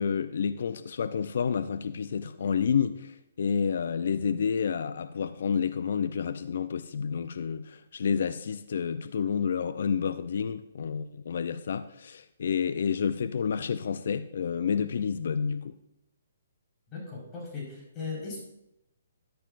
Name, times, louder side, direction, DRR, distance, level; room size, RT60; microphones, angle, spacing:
voice 1, 0.0-15.8, left 6 dB, 65° left, 12 dB, 0.5 m, -29 dB
voice 2, 16.9-18.5, left 4 dB, 25° left, -3 dB, 4.5 m, -38 dB
13.5 x 10.5 x 2.5 m, 0.82 s
hypercardioid pair, 140°, 0 cm